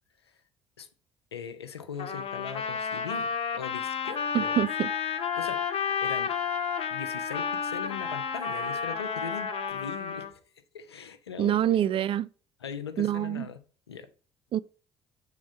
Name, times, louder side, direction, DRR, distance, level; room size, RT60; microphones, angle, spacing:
voice 1, 1.3-4.6 5.4-5.7 6.0-6.3 6.9-10.4 10.7-12.0 12.6-14.1, left 7 dB, 85° left, 0.6 m, -40 dB
Trumpet, 2.0-10.3, left 7 dB, 50° left, 1.1 m, -31 dB
sound 1, 4.0-9.7, left 3 dB, 20° right, 1.6 m, -41 dB
voice 2, 4.3-4.9 11.4-12.3 13.0-13.5 14.5-14.6, right 11 dB, 45° right, 0.4 m, -26 dB
7.2 x 3.7 x 4.9 m
figure-of-eight pair, 50°, 13 cm